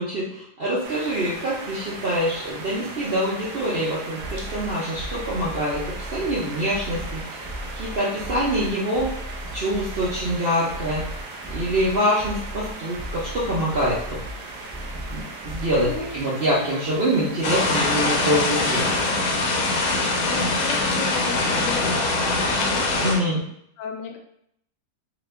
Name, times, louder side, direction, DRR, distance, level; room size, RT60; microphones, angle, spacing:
voice 1, 0.0-7.4 7.8-9.1 9.5-11.0 11.5-14.2 15.1-19.0 23.0-23.4, equal, 60° right, -7 dB, 0.6 m, -25 dB
sound 1, 0.8-19.1, right 3 dB, 75° right, 1.1 m, -38 dB
sound 2, 4.2-16.2, equal, 10° right, 0.5 m, -37 dB
voice 2, 15.7-16.2 20.2-22.2 22.5-22.8 23.8-24.2, left 5 dB, 85° left, 3 dB, 1.2 m, -34 dB
sound 3, 17.4-23.2, left 2 dB, 70° left, 1.1 m, -23 dB
2.9 x 2.5 x 3.2 m, 0.71 s
omnidirectional pair, 1.8 m